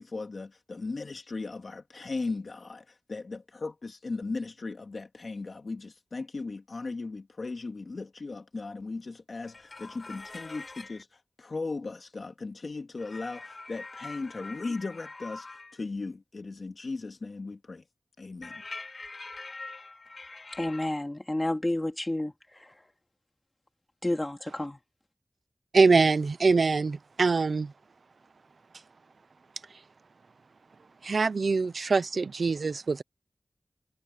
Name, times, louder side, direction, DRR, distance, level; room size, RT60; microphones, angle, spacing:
voice 1, 0.0-17.8 18.2-18.6, left 3 dB, 75° left, 2.5 m, -37 dB
sound 1, 9.4-11.0 13.0-15.8 18.4-20.9, left 3 dB, 60° left, 6.8 m, -44 dB
voice 2, 20.6-22.3 24.0-24.8, left 1 dB, 25° left, 2.7 m, -30 dB
voice 3, 25.7-27.7 31.0-33.0, right 4 dB, 85° right, 0.7 m, -24 dB
wide cardioid pair, 60°, 0 cm